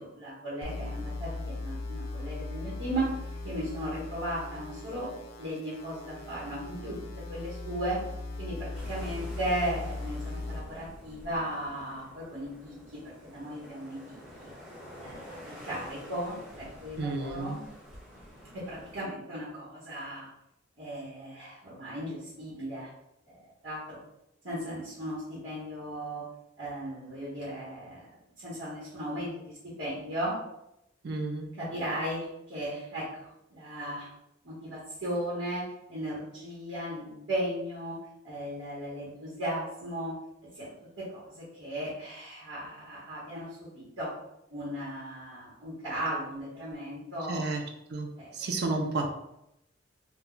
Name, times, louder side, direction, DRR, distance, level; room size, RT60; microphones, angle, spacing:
voice 1, 0.0-3.1 3.4-5.1 5.4-7.0 7.3-8.0 8.4-14.5 15.0-17.6 18.5-20.3 20.8-22.9 23.3-24.0 24.4-26.2 26.6-28.1 28.4-30.4 31.6-34.1 34.4-38.0 38.2-40.1 40.5-44.1 44.5-47.4 48.2-48.3, right 1 dB, 80° right, -8 dB, 1.0 m, -36 dB
sound 1, 0.6-10.6, left 2 dB, 65° left, 0.5 m, -39 dB
sound 2, 8.7-19.0, equal, 5° right, 0.5 m, -48 dB
voice 2, 17.0-17.6 31.0-31.5 47.3-47.6 47.9-49.1, right 3 dB, 60° right, 3 dB, 0.5 m, -31 dB
2.2 x 2.1 x 3.7 m, 0.83 s
head